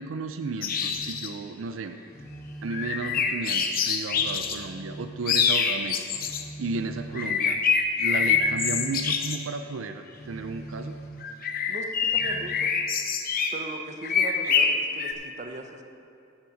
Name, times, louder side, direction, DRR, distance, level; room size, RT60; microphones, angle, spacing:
voice 1, 0.0-2.0 2.6-6.0 6.6-7.6 8.0-11.0, right 4 dB, 75° right, 8 dB, 0.5 m, -34 dB
sound 1, 0.6-1.3 2.7-4.7 5.3-6.4 7.2-9.4 11.2-13.6 14.0-15.1, left 6 dB, 45° left, 0.7 m, -25 dB
Telephone, 0.8-1.3 2.1-3.3 4.1-5.3 6.1-7.3 8.1-9.2 10.1-11.3 12.1-12.7, right 2 dB, 15° left, 1.2 m, -42 dB
voice 2, 11.7-12.7 13.5-15.8, right 2 dB, 35° right, 5 dB, 0.7 m, -39 dB
11.0 x 7.3 x 5.2 m, 2.5 s
head